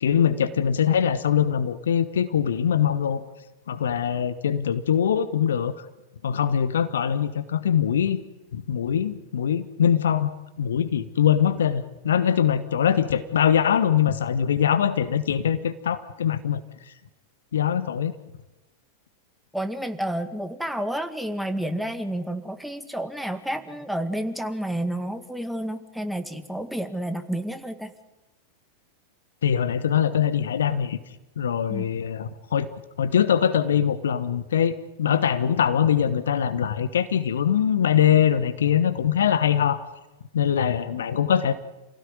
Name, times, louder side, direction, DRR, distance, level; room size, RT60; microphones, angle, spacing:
voice 1, 0.0-3.2 3.7-5.7 6.2-8.2 8.5-10.3 10.6-16.6 17.5-18.1 29.4-31.0 31.4-32.7 33.0-39.8 40.3-41.5, left 8 dB, 65° left, 13 dB, 1.2 m, -22 dB
voice 2, 19.5-27.9 31.7-31.9, right 1 dB, ahead, 8 dB, 2.0 m, -30 dB
28.5 x 17.0 x 9.6 m, 1.1 s
figure-of-eight pair, 90°, 0 cm